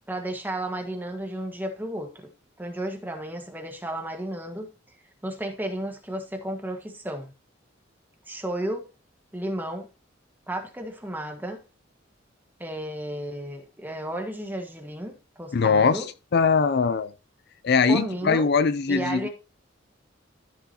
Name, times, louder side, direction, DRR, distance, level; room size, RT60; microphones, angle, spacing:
voice 1, 0.1-2.3 2.6-4.7 5.2-7.3 8.3-8.8 9.3-9.9 10.5-11.6 12.6-16.1 17.8-18.5 18.9-19.3, right 1 dB, 10° right, 1.6 m, -33 dB
voice 2, 15.5-16.0 16.3-17.1 17.6-19.3, left 5 dB, 55° left, 0.5 m, -21 dB
13.5 x 5.9 x 2.9 m
head